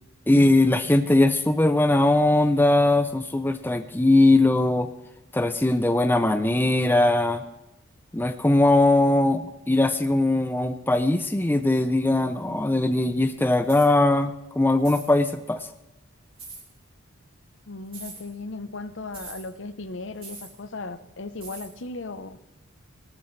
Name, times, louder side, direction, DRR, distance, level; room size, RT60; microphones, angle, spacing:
voice 1, 0.3-4.9 5.3-7.4 8.1-15.7, left 2 dB, 10° left, 9 dB, 0.5 m, -20 dB
sound 1, 13.6-13.9 14.8-15.1 16.4-16.6 17.9-18.2 19.1-19.4 20.2-20.5 21.4-21.7, right 4 dB, 25° right, 3.2 m, -41 dB
voice 2, 17.7-22.4, left 3 dB, 60° left, 12 dB, 0.8 m, -36 dB
18.5 x 13.0 x 3.3 m, 0.99 s
head